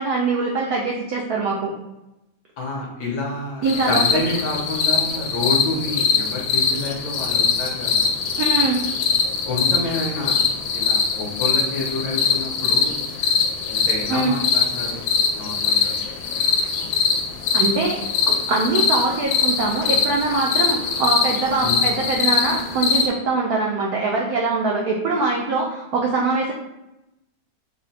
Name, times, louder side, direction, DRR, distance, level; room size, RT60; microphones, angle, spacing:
voice 1, 0.0-1.7 3.6-4.2 8.4-8.8 14.1-14.4 17.5-18.0 18.3-26.5, right 3 dB, 85° right, -2 dB, 0.8 m, -23 dB
voice 2, 2.6-8.1 9.5-10.4 10.7-13.0 13.7-15.9 21.6-21.8, left 2 dB, 65° left, -2 dB, 1.2 m, -28 dB
sound 1, 3.6-23.1, left 5 dB, 90° left, 1.4 m, -22 dB
3.6 x 2.1 x 4.0 m, 0.91 s
omnidirectional pair, 2.2 m